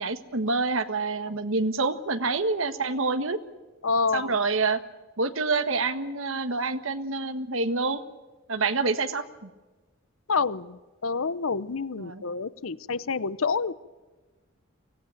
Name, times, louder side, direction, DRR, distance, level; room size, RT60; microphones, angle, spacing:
voice 1, 0.0-3.4 4.1-4.8 5.2-8.0 8.5-9.5 12.0-12.2, right 3 dB, 75° right, 10 dB, 1.5 m, -27 dB
voice 2, 3.8-4.4 10.3-13.7, left 4 dB, 80° left, 17 dB, 0.8 m, -28 dB
24.5 x 17.5 x 9.1 m, 1.2 s
head